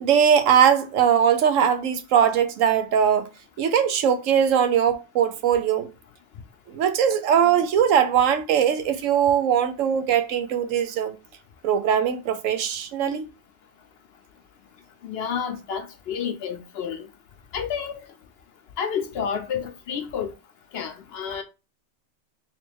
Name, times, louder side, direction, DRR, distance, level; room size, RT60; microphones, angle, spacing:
voice 1, 0.0-3.3 3.6-5.9 6.7-11.1 11.6-13.2, right 8 dB, 90° right, 1.0 m, -20 dB
voice 2, 15.0-17.1 17.5-18.0 18.8-20.3 20.7-21.4, left 7 dB, 65° left, 0.7 m, -30 dB
3.2 x 3.0 x 3.4 m
omnidirectional pair, 1.3 m